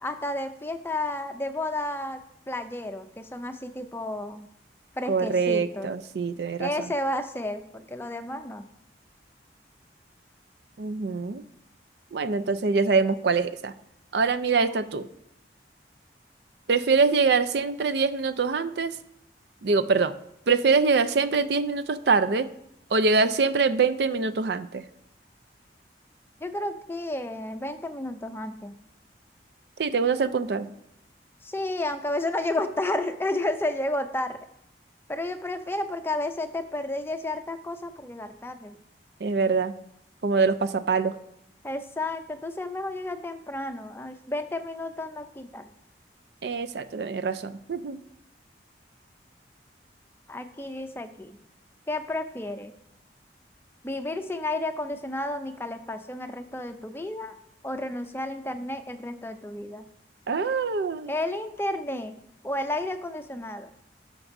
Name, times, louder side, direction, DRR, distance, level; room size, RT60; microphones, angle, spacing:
voice 1, 0.0-4.5 5.0-5.9 6.6-8.7 14.6-14.8 26.4-28.8 31.4-34.4 35.1-38.8 41.6-45.7 50.3-51.4 51.9-52.7 53.8-57.3 57.6-59.8 61.1-62.2 62.4-63.7, left 1 dB, 10° left, 7 dB, 0.5 m, -32 dB
voice 2, 5.1-6.9 10.8-11.4 12.1-13.7 14.1-15.1 16.7-18.9 19.6-20.1 20.5-22.5 22.9-24.9 29.8-30.7 39.2-39.7 40.2-41.1 46.4-48.0 60.3-61.1, right 4 dB, 65° right, 11 dB, 0.5 m, -24 dB
17.5 x 5.9 x 2.6 m, 0.80 s
head